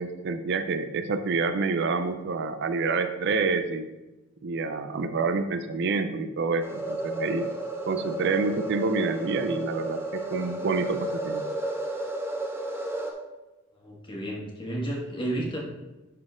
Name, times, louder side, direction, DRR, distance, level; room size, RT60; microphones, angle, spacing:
voice 1, 0.0-3.9 4.4-7.5 7.9-11.4, right 4 dB, 60° right, 9 dB, 0.5 m, -28 dB
sound 1, 6.6-13.1, right 2 dB, 10° right, 1.0 m, -32 dB
voice 2, 13.8-15.6, right 1 dB, 25° left, -2 dB, 1.7 m, -32 dB
11.0 x 4.2 x 3.7 m, 1.1 s
head